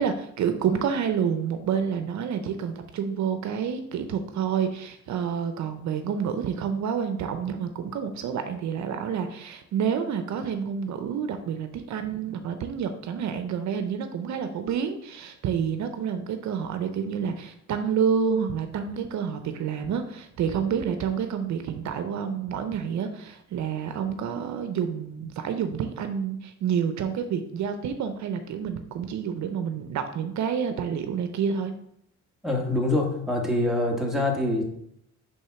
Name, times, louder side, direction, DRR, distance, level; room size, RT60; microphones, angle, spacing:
voice 1, 0.0-31.7, right 7 dB, 70° right, 8 dB, 0.6 m, -28 dB
voice 2, 32.4-34.6, left 1 dB, ahead, -1 dB, 1.5 m, -25 dB
5.4 x 3.5 x 5.8 m, 0.73 s
cardioid pair, 90°, 30 cm